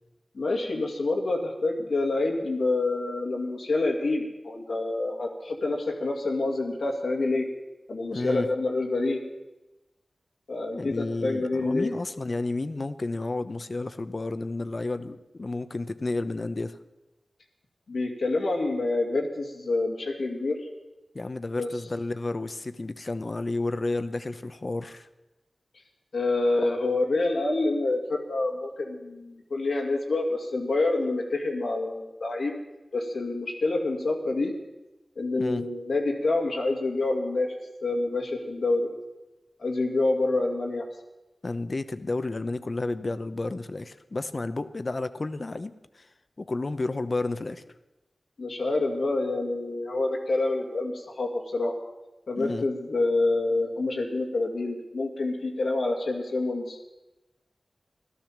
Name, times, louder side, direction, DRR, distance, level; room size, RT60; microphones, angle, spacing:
voice 1, 0.3-7.5 7.9-9.2 10.5-11.9 17.9-20.6 21.6-21.7 26.1-32.5 32.9-34.5 35.2-37.5 37.8-38.9 39.6-40.8 48.4-51.7 52.3-56.8, left 2 dB, 90° left, 0 dB, 2.3 m, -27 dB
voice 2, 8.1-8.5 10.7-16.8 21.1-25.1 35.3-35.7 41.4-46.1 46.4-47.6 52.4-52.7, left 2 dB, 50° left, 12 dB, 0.8 m, -31 dB
14.0 x 12.0 x 7.4 m, 1.0 s
cardioid pair, 50°, 0 cm